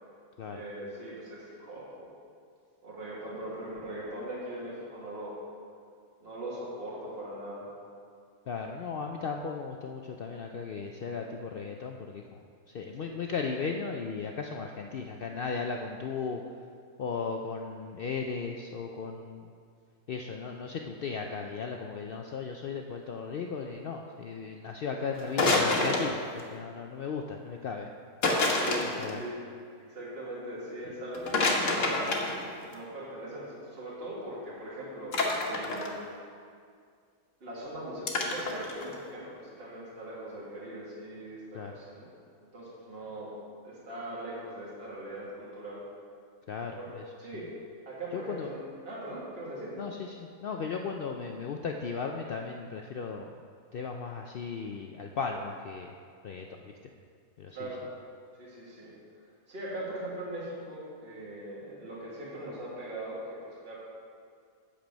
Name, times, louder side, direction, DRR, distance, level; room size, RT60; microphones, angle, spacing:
voice 1, 0.5-2.1 2.8-5.4 6.2-7.7 24.9-25.3 28.6-29.4 29.8-32.1 32.7-36.0 37.4-42.1 42.5-43.3 43.6-45.8 46.8-46.9 47.2-47.5 47.9-49.7 57.5-57.8 58.4-58.9 59.5-63.8, right 1 dB, 40° right, -7 dB, 1.9 m, -40 dB
voice 2, 8.5-12.4 12.7-16.4 17.0-19.5 20.1-27.9 28.8-29.2 41.5-41.7 46.5-47.0 47.3-47.4 48.1-48.5 49.8-53.4 53.7-55.9 56.2-56.7 57.4-57.7, left 5 dB, 85° left, 2 dB, 0.5 m, -36 dB
sound 1, 25.2-26.4 28.2-29.1 31.1-32.7 35.1-35.9 38.1-39.0, left 2 dB, 60° left, 1.4 m, -27 dB
8.7 x 7.4 x 5.2 m, 2.2 s
omnidirectional pair, 1.6 m